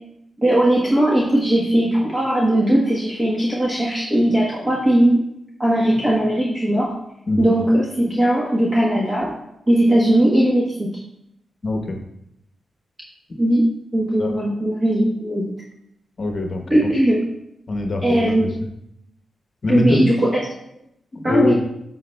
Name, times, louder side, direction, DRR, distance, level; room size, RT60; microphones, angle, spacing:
voice 1, 0.4-5.2 5.6-6.9 7.4-9.3 9.7-11.0 13.4-13.7 13.9-15.4 16.7-17.2 18.0-18.5 19.7-20.4 21.2-21.6, right 1 dB, 20° right, -5 dB, 1.2 m, -18 dB
voice 2, 11.6-12.0 14.2-14.3 16.2-16.6 17.7-18.3 19.6-20.0 21.3-21.6, left 2 dB, 45° left, 3 dB, 0.9 m, -21 dB
9.3 x 5.8 x 2.2 m, 0.81 s
wide cardioid pair, 115°, 0 cm